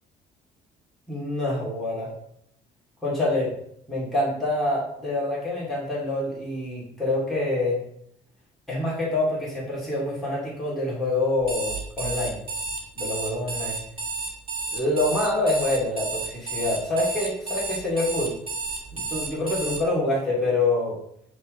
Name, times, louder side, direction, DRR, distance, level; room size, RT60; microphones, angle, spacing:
voice 1, 1.1-2.1 3.0-3.5 3.9-7.8 8.7-12.4 13.0-13.8 14.7-18.3 18.9-21.0, left 2 dB, ahead, -7 dB, 2.8 m, -26 dB
Alarm, 11.4-19.8, right 3 dB, 30° right, 1.8 m, -31 dB
9.2 x 3.6 x 3.8 m, 0.72 s
cardioid pair, 110°, 17 cm